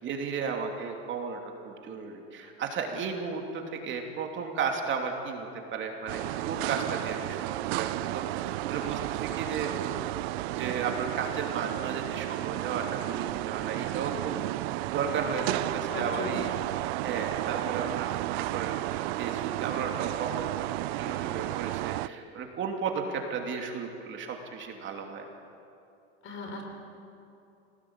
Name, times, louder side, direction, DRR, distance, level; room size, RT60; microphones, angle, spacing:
voice 1, 0.0-10.0 10.4-14.4 14.9-16.5 17.0-20.5 20.8-25.2, right 5 dB, 35° right, 3 dB, 2.9 m, -34 dB
sound 1, 6.1-22.1, right 18 dB, 70° right, 0.7 m, -32 dB
voice 2, 15.8-16.6 26.2-26.6, left 2 dB, 40° left, 2 dB, 5.2 m, -37 dB
26.0 x 18.5 x 8.8 m, 2.7 s
supercardioid pair, 125°, 32 cm